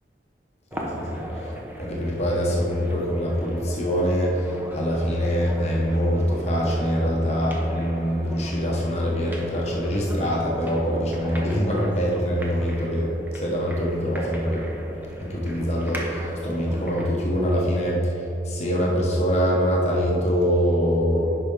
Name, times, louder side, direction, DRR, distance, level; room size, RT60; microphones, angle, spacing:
voice 1, 0.7-1.5 1.8-14.7 15.2-21.4, equal, 40° left, -4 dB, 1.0 m, -24 dB
sound 1, 0.7-17.2, equal, 10° right, 0.8 m, -38 dB
10.0 x 5.6 x 3.7 m, 2.9 s
head